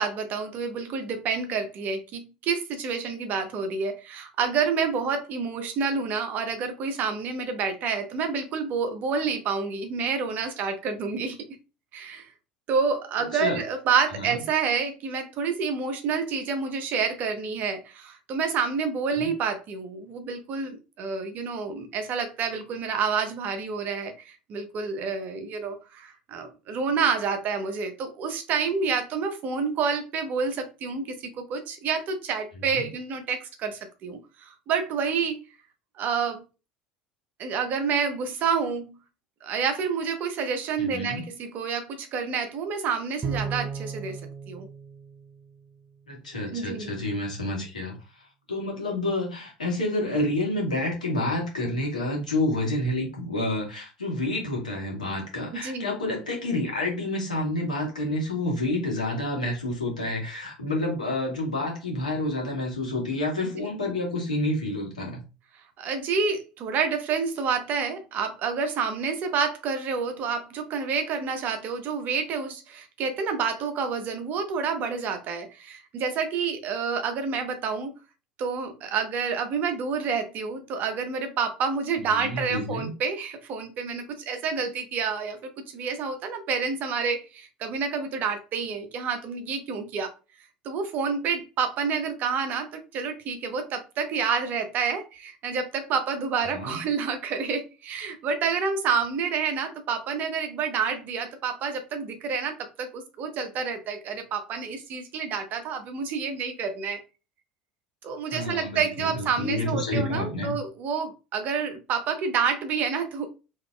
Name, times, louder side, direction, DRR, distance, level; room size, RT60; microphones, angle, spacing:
voice 1, 0.0-11.4 11.9-12.3 12.7-35.4 36.0-36.4 37.4-39.0 39.4-44.2 44.5-44.7 46.5-46.9 55.5-55.9 63.6-63.7 65.8-77.9 78.4-90.1 90.6-107.0 108.0-113.3, right 5 dB, 45° right, 1.0 m, -28 dB
voice 2, 40.8-41.3 46.1-47.9 48.5-65.2 82.1-82.9 96.5-96.8 108.3-110.5, left 1 dB, 85° left, 1.4 m, -29 dB
Bowed string instrument, 43.2-45.9, right 6 dB, 25° right, 0.5 m, -35 dB
3.8 x 3.2 x 2.3 m
figure-of-eight pair, 65°, 4 cm